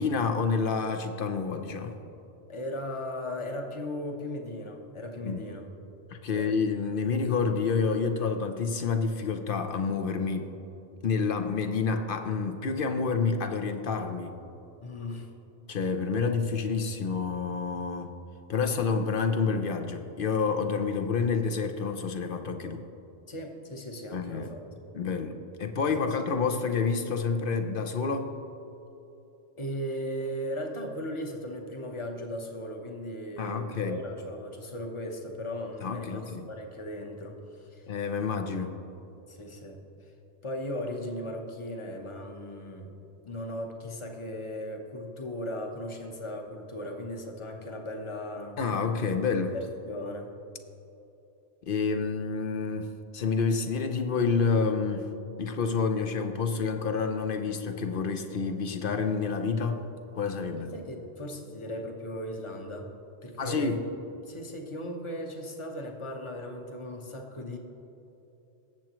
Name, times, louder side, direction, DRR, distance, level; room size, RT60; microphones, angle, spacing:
voice 1, 0.0-2.0 5.2-5.4 6.1-10.6 11.0-14.4 15.7-18.1 18.5-22.8 24.1-24.5 24.9-28.3 33.4-34.0 35.8-36.5 37.9-38.8 48.6-49.6 51.6-55.1 55.4-59.9 60.1-60.7 63.4-63.8, left 5 dB, 55° left, 6 dB, 0.8 m, -28 dB
voice 2, 2.5-5.7 6.3-6.5 14.8-15.3 23.3-24.8 29.6-37.9 39.3-39.8 40.4-42.9 43.2-48.6 49.4-50.3 60.6-62.9 63.2-63.8 64.2-67.6, equal, 30° left, 3 dB, 1.0 m, -37 dB
18.5 x 7.5 x 3.0 m, 2.9 s
omnidirectional pair, 1.2 m